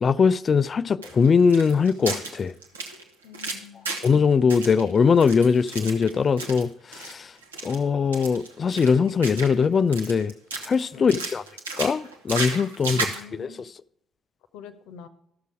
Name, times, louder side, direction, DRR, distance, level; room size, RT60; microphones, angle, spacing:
voice 1, 0.0-2.5 4.0-7.3 7.6-10.3 10.6-11.4 11.8-13.1 13.3-13.5, left 5 dB, 40° left, 0.3 m, -21 dB
sound 1, 1.0-4.2 4.5-6.6 6.9-7.1 7.4-7.8 8.1-9.6 9.9-10.8 11.1-13.2, right 3 dB, 80° right, 1.0 m, -33 dB
voice 2, 3.2-4.0 10.9-11.2 12.9-13.7 14.5-15.1, left 8 dB, 65° left, 0.8 m, -44 dB
13.5 x 6.7 x 4.9 m
figure-of-eight pair, 45°, 0 cm